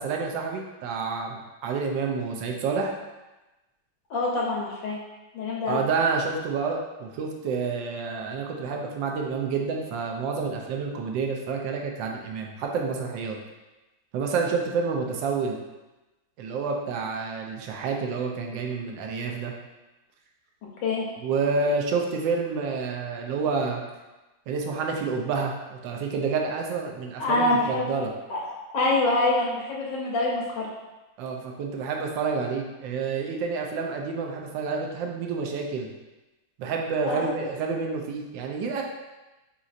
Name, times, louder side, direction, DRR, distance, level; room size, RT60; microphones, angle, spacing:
voice 1, 0.0-2.9 5.7-13.4 14.1-15.6 16.4-19.5 21.2-23.8 24.5-28.1 31.2-35.9 36.6-38.8, right 4 dB, 75° right, 1 dB, 1.2 m, -29 dB
voice 2, 4.1-5.0 5.3-5.8 20.8-21.0 27.2-27.9 28.3-28.4 28.7-30.7 37.0-37.4, left 2 dB, 70° left, -3 dB, 1.3 m, -25 dB
4.1 x 3.9 x 2.4 m, 1.1 s
omnidirectional pair, 2.3 m